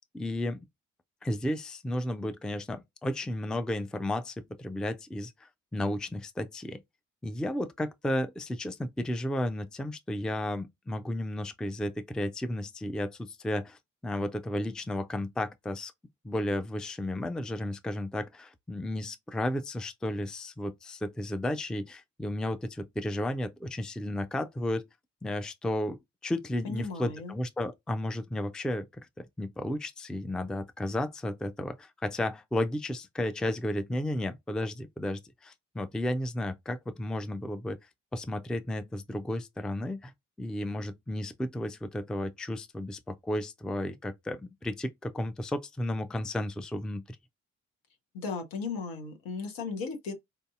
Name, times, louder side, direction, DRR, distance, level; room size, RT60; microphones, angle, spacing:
voice 1, 0.1-0.7 1.2-6.8 7.2-15.9 16.2-24.8 25.2-28.9 29.2-37.8 38.1-40.1 40.4-47.2, left 1 dB, ahead, 0.4 m, -33 dB
voice 2, 26.6-27.4 48.1-50.1, left 4 dB, 65° left, 1.1 m, -36 dB
4.4 x 2.6 x 2.4 m
figure-of-eight pair, 40°, 37 cm